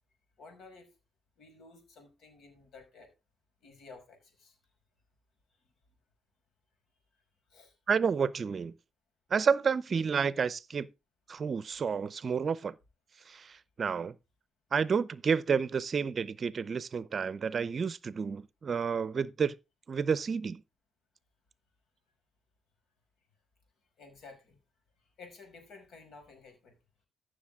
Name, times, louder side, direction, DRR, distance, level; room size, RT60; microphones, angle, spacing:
voice 1, 0.4-0.9 1.4-3.1 3.6-4.6 7.5-7.7 24.0-24.6 25.2-26.8, left 4 dB, 65° left, 5.5 m, -53 dB
voice 2, 7.9-8.7 9.3-10.9 11.3-12.7 13.3-14.1 14.7-19.5 19.9-20.6, right 6 dB, 45° right, 0.6 m, -30 dB
14.5 x 6.5 x 3.7 m
cardioid pair, 90°, 0 cm